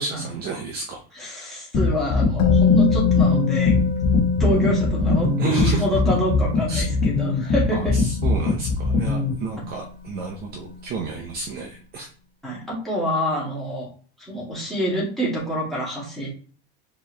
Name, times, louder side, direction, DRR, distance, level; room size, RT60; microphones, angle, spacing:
voice 1, 0.0-1.0 5.4-5.8 6.7-6.9 7.7-12.1, right 4 dB, 30° right, 2 dB, 0.6 m, -31 dB
voice 2, 1.1-3.8 4.4-8.0 12.4-13.9 14.2-16.3, equal, ahead, -7 dB, 1.8 m, -26 dB
sound 1, 1.7-9.3, left 3 dB, 30° left, 1.1 m, -21 dB
Musical instrument, 2.4-10.3 10.6-10.7, left 6 dB, 50° left, 1.4 m, -25 dB
4.4 x 3.0 x 3.2 m, 0.41 s
supercardioid pair, 165°, 31 cm